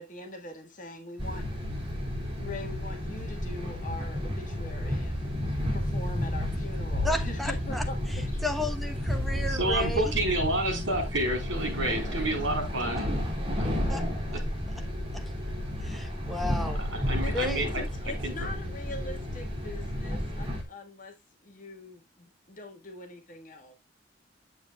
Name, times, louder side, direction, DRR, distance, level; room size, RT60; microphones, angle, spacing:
voice 1, 0.0-1.5 2.4-8.6 9.0-9.2 9.7-9.8 11.8-12.4 17.2-23.7, left 2 dB, 45° left, 1.7 m, -43 dB
sound 1, 1.2-20.6, left 1 dB, 30° right, 2.7 m, -32 dB
voice 2, 7.0-7.8 8.4-10.1 13.9-14.0 14.3-14.4 15.1-15.2 15.8-16.8 17.3-17.7, left 1 dB, ahead, 1.0 m, -33 dB
voice 3, 9.5-13.1 13.6-13.7 14.3-14.4 16.8-18.5, right 1 dB, 75° right, 3.8 m, -30 dB
8.4 x 7.3 x 2.3 m
head